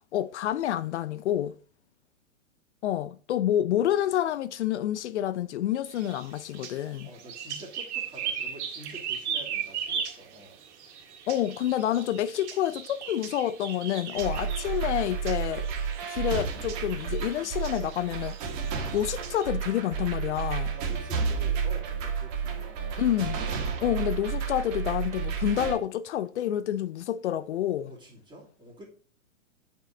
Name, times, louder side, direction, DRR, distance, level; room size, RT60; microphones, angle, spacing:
voice 1, 0.1-1.6 2.8-7.1 11.3-15.7 16.1-18.4 18.9-20.7 23.0-23.4 23.8-27.9, left 11 dB, 55° left, 0.5 m, -28 dB
sound 1, 5.9-19.5, right 8 dB, 55° right, 2.0 m, -38 dB
voice 2, 7.0-10.6 20.7-23.1 27.8-28.9, right 1 dB, 10° right, 2.3 m, -47 dB
sound 2, 14.2-25.7, right 6 dB, 35° right, 1.7 m, -31 dB
7.7 x 5.5 x 3.9 m
hypercardioid pair, 125°, 41 cm